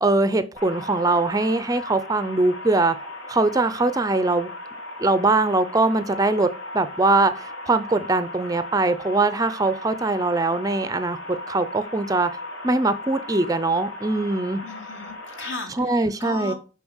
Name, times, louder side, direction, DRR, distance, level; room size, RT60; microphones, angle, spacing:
voice 1, 0.0-3.0 3.3-4.5 5.0-6.5 6.7-11.2 11.5-12.3 12.6-14.6 15.7-16.5, right 2 dB, 20° right, 12 dB, 0.5 m, -22 dB
sound 1, 0.6-15.6, left 1 dB, 80° left, 2.4 m, -37 dB
voice 2, 14.6-16.5, left 3 dB, 65° left, 2 dB, 2.6 m, -36 dB
7.1 x 5.9 x 6.3 m, 0.35 s
head